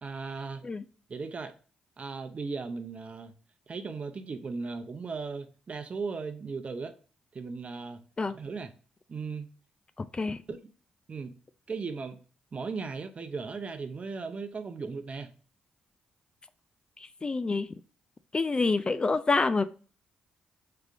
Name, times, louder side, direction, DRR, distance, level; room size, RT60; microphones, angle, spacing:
voice 1, 0.0-0.7 1.1-1.5 2.0-3.3 3.7-6.9 7.3-8.0 8.3-8.7 9.1-9.5 10.5-10.7 11.1-11.4 11.7-12.2 12.5-15.3, right 4 dB, 40° right, 0.6 m, -37 dB
voice 2, 17.0-17.7 18.3-19.6, left 3 dB, 30° left, 0.3 m, -27 dB
3.6 x 3.3 x 3.5 m
supercardioid pair, 60°, 3 cm